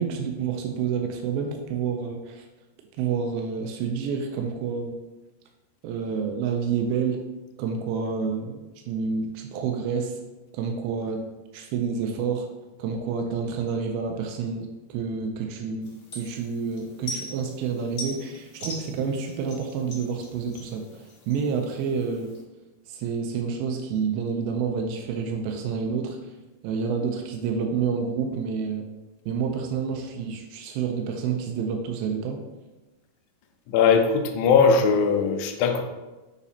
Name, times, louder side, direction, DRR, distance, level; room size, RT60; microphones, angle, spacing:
voice 1, 0.0-2.5 3.0-4.9 5.8-7.2 7.6-10.2 10.5-11.2 11.5-12.5 12.8-22.3 22.9-26.3 26.6-28.8 29.3-32.4, right 6 dB, 90° right, 4 dB, 2.4 m, -29 dB
sound 1, 15.8-22.4, left 1 dB, 50° left, 1.3 m, -41 dB
voice 2, 33.7-35.8, left 5 dB, 80° left, 4 dB, 1.8 m, -20 dB
7.0 x 5.9 x 2.8 m, 1.1 s
omnidirectional pair, 4.3 m